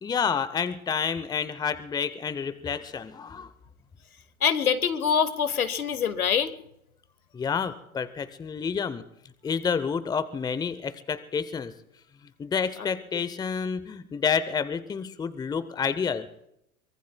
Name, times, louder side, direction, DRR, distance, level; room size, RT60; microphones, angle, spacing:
voice 1, 0.0-3.5 7.3-9.0 9.4-11.7 12.4-16.3, left 6 dB, 10° left, 14 dB, 0.6 m, -29 dB
voice 2, 4.4-6.5, left 7 dB, 85° left, 14 dB, 1.1 m, -24 dB
24.0 x 22.0 x 2.2 m, 0.78 s
hypercardioid pair, 90°, 42 cm